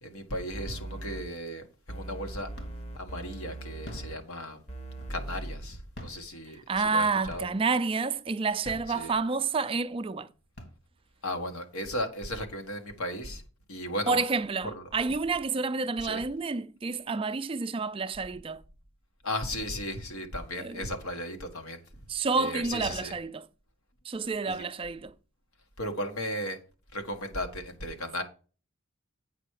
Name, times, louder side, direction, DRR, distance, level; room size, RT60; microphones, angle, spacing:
voice 1, 0.0-2.5 2.9-4.6 5.1-7.5 8.9-9.1 11.2-13.4 13.7-14.2 14.7-14.8 16.0-16.2 19.2-21.8 22.4-23.1 24.5-24.6 25.8-26.6 26.9-28.2, equal, 85° left, 1.6 m, -35 dB
sound 1, 0.5-1.2 1.9-4.1 4.7-5.6, right 1 dB, 30° left, 0.9 m, -39 dB
sound 2, 1.2-1.7 2.0-3.0 3.7-5.4 5.8-7.0 7.3-7.8 8.4-9.5 10.0-10.1 10.4-11.3, equal, 50° left, 1.8 m, -46 dB
voice 2, 6.7-10.3 14.1-18.6 20.6-20.9 22.1-23.5 24.0-25.1, right 4 dB, 25° right, 0.3 m, -29 dB
8.3 x 5.7 x 4.8 m
head